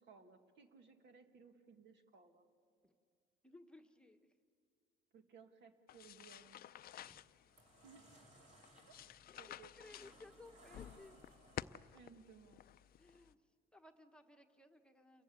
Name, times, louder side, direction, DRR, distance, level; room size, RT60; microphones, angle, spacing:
voice 1, 0.0-2.5 5.1-6.6 7.8-8.1 9.4-9.7 10.6-10.8 11.9-12.6, right 5 dB, 65° right, 6 dB, 1.9 m, -61 dB
voice 2, 3.4-4.2 7.0-7.2 9.3-11.2 13.0-13.4 13.7-15.2, left 2 dB, 5° left, 5 dB, 1.2 m, -60 dB
sound 1, 5.9-13.3, left 11 dB, 50° left, 0.5 m, -53 dB
sound 2, 6.6-6.8 7.3-12.0, right 1 dB, 35° right, 3.8 m, -64 dB
28.0 x 15.0 x 8.4 m, 2.4 s
cardioid pair, 100°, 20 cm